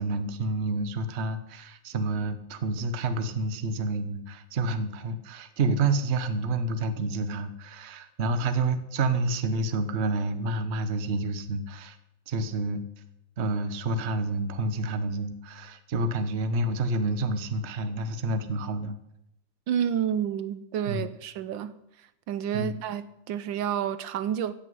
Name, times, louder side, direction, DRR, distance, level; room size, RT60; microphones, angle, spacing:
voice 1, 0.0-12.0 12.3-12.8 13.4-19.0 20.9-21.1 22.5-22.7, right 2 dB, 45° right, 1.1 m, -29 dB
voice 2, 19.7-24.5, right 9 dB, 75° right, 1.5 m, -30 dB
14.5 x 6.4 x 9.3 m
omnidirectional pair, 2.1 m